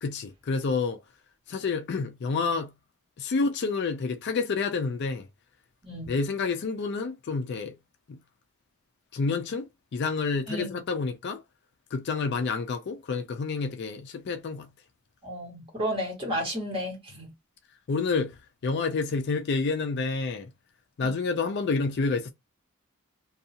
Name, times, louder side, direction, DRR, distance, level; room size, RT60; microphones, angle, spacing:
voice 1, 0.0-1.0 1.5-2.7 3.2-5.2 6.1-7.7 9.1-9.7 9.9-11.4 11.9-14.7 17.9-18.3 18.6-20.5 21.0-22.3, left 4 dB, 50° left, 0.4 m, -28 dB
voice 2, 10.5-10.8 15.2-17.3, equal, 25° right, 1.4 m, -32 dB
2.6 x 2.3 x 2.7 m
head